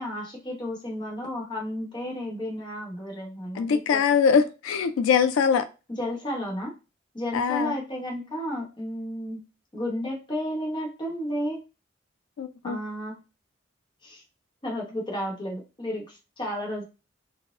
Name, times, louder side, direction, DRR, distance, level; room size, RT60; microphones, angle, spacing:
voice 1, 0.0-4.0 4.3-4.4 5.9-6.7 7.1-9.4 9.7-11.6 12.6-13.2 14.0-14.2 14.6-16.8, equal, 20° left, 0.9 m, -32 dB
voice 2, 3.5-5.7 7.3-7.8 12.4-12.8, left 6 dB, 80° left, 0.3 m, -22 dB
4.1 x 2.1 x 2.4 m
head